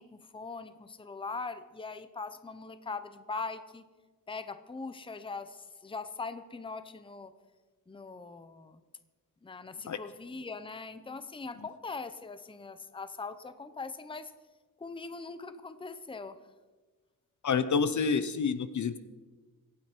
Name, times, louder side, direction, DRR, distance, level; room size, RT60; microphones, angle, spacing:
voice 1, 0.0-3.9 4.3-7.3 7.9-8.8 9.4-14.3 14.8-16.4, left 4 dB, 15° left, 11 dB, 0.7 m, -41 dB
voice 2, 17.4-19.0, left 5 dB, 55° left, 13 dB, 0.7 m, -28 dB
24.0 x 9.5 x 4.5 m, 1.3 s
wide cardioid pair, 150°, 35 cm